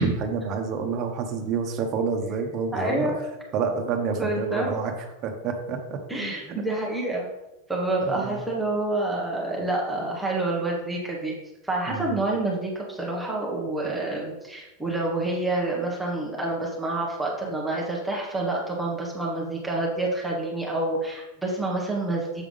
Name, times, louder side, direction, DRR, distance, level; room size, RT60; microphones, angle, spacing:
voice 1, 0.0-3.1 3.5-4.9 5.2-6.3 8.1-8.4 11.9-12.2, right 5 dB, 35° right, 3 dB, 1.1 m, -28 dB
voice 2, 2.7-3.2 4.2-4.7 6.1-7.3 7.7-11.3 11.6-22.4, right 2 dB, 5° right, -3 dB, 1.2 m, -28 dB
7.4 x 3.5 x 5.4 m, 0.98 s
supercardioid pair, 145°, 0 cm